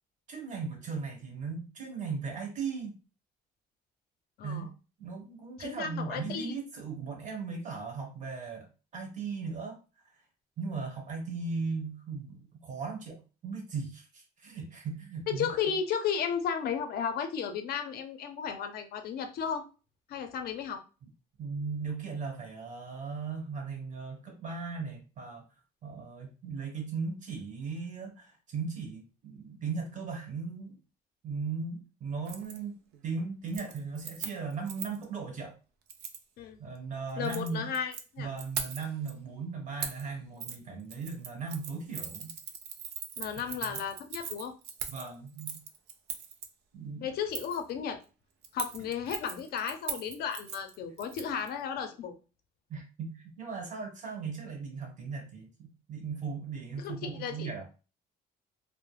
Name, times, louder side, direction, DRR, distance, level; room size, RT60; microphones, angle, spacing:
voice 1, 0.3-3.0 4.4-4.7 5.0-8.7 8.9-9.8 10.6-15.5 21.0-21.1 21.4-25.5 25.8-30.8 31.2-32.8 33.0-35.5 36.6-37.7 38.2-42.4 43.7-43.8 44.9-45.6 46.7-47.1 52.7-57.7, right 5 dB, 50° right, 2 dB, 1.1 m, -37 dB
voice 2, 5.6-6.5 15.3-19.6 20.1-20.8 36.4-36.6 37.2-38.3 43.2-44.5 47.0-48.0 48.5-52.1 56.8-57.5, left 7 dB, 65° left, 7 dB, 0.5 m, -34 dB
Keys jangling, 32.2-32.6 32.9-33.2 33.5-35.0 35.9-36.2 37.1-38.0 38.4-39.1 39.8-40.1 40.4-40.6 40.9-46.5 47.3-47.6 48.4-51.5 51.8-51.9, right 7 dB, 75° right, 0.4 m, -40 dB
2.2 x 2.0 x 3.2 m, 0.33 s
cardioid pair, 110°, 17 cm